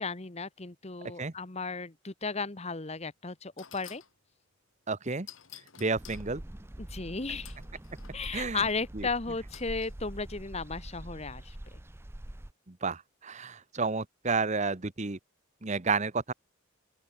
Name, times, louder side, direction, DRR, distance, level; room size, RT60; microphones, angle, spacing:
voice 1, 0.0-4.0 6.8-7.5 8.1-11.5, left 4 dB, 30° left, 1.3 m, -35 dB
sound 1, 3.0-3.1 3.6-4.1 5.3-6.3 7.5-8.4 9.5-9.9, left 10 dB, 75° left, 3.6 m, -51 dB
voice 2, 4.9-5.3 5.8-6.4 8.3-8.6 8.9-9.1 12.7-15.2 15.6-16.3, right 4 dB, 35° right, 1.1 m, -31 dB
sound 2, 5.9-12.5, right 1 dB, 10° right, 0.6 m, -44 dB
open air
head